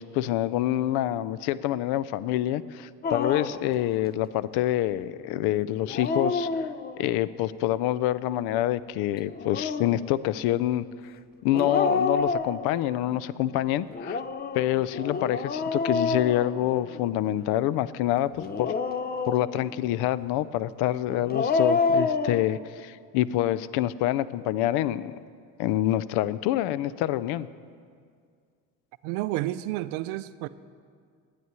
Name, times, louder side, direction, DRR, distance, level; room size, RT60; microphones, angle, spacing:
voice 1, 0.0-6.7 7.0-10.8 11.4-14.2 14.5-18.7 19.3-25.2 25.6-27.5, left 13 dB, 75° left, 18 dB, 0.5 m, -26 dB
Dog, 3.0-3.7 5.8-7.1 9.2-10.0 11.5-13.0 13.9-17.1 18.4-19.8 21.1-22.4, left 4 dB, 25° left, 0.6 m, -28 dB
voice 2, 29.0-30.5, right 16 dB, 90° right, 14 dB, 0.5 m, -30 dB
9.5 x 8.5 x 9.5 m, 2.2 s
cardioid pair, 105°, 39 cm